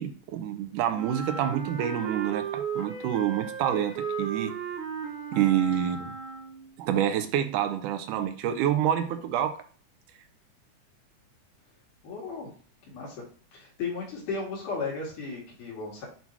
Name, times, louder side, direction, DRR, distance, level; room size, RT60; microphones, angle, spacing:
voice 1, 0.0-4.5 5.3-6.1 6.8-9.6, right 10 dB, 85° right, 8 dB, 2.2 m, -27 dB
Wind instrument woodwind instrument, 0.9-6.7, right 6 dB, 55° right, 1.8 m, -35 dB
voice 2, 12.0-12.5 12.9-13.2 13.5-16.1, left 4 dB, 80° left, -3 dB, 3.6 m, -35 dB
8.1 x 2.8 x 4.5 m, 0.43 s
omnidirectional pair, 3.6 m